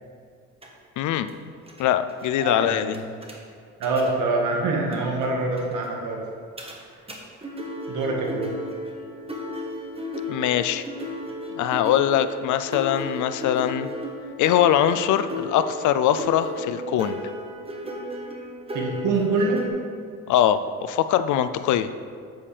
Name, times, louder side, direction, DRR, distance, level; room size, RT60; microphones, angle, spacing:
sound 1, 0.6-0.7 1.3-1.4 1.7-1.8 2.1-2.3 2.9-3.4 3.8-4.1 4.9-5.0 5.2-5.3 5.5-5.7 6.6-6.8 7.1-7.2 7.4-19.7, left 1 dB, 20° right, 1.3 m, -34 dB
voice 1, 1.0-1.3 1.8-3.0 10.3-10.8 11.5-13.9 14.4-17.2 20.3-21.9, left 10 dB, 75° left, 11 dB, 0.5 m, -22 dB
voice 2, 2.4-3.0 3.8-6.2 7.9-8.5 18.7-19.6, right 3 dB, 85° right, -1 dB, 1.6 m, -25 dB
8.4 x 7.2 x 3.3 m, 2.1 s
cardioid pair, 90°, 30 cm